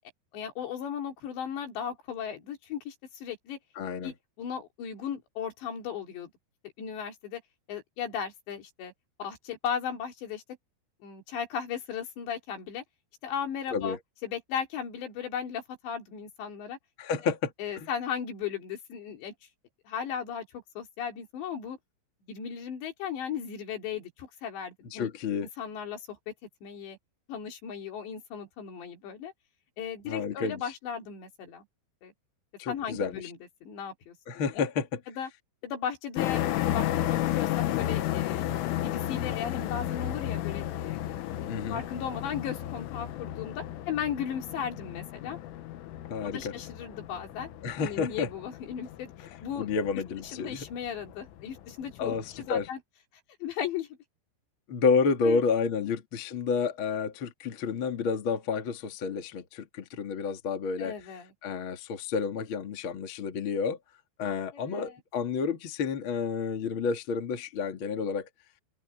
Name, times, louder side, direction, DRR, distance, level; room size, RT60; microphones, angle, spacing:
voice 1, 0.3-3.6 4.0-6.3 6.8-7.4 7.7-8.9 9.2-10.4 11.0-12.8 13.2-14.0 14.2-16.8 17.6-19.3 19.9-21.8 22.3-25.1 25.6-26.2 26.6-27.0 27.3-29.3 29.8-31.7 32.0-32.1 32.7-34.7 35.1-35.3 35.6-38.5 38.8-41.2 41.7-45.4 46.2-47.5 47.8-49.7 50.0-52.8 53.4-53.9 55.2-55.4 55.8-55.9 60.8-61.3 64.5-65.0, left 8 dB, 65° left, 5.2 m, -36 dB
voice 2, 3.7-4.1 13.7-14.0 17.0-17.9 24.9-25.5 30.0-30.6 32.6-33.3 34.3-35.0 41.5-41.8 46.1-46.5 47.6-48.3 49.6-50.6 52.0-52.2 52.5-52.7 54.7-60.9 61.4-63.8 64.2-68.3, left 5 dB, 50° left, 1.6 m, -30 dB
sound 1, 36.2-52.7, left 13 dB, 80° left, 3.9 m, -33 dB
open air
omnidirectional pair, 5.6 m